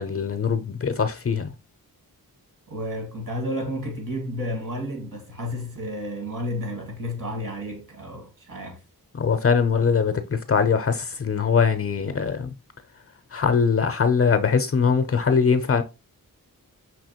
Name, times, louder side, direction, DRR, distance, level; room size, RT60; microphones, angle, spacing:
voice 1, 0.0-1.5 9.2-12.5 13.3-15.8, left 6 dB, 40° left, 0.5 m, -22 dB
voice 2, 2.7-8.8, equal, 60° right, 1.7 m, -31 dB
5.6 x 2.9 x 2.8 m
wide cardioid pair, 80°, 35 cm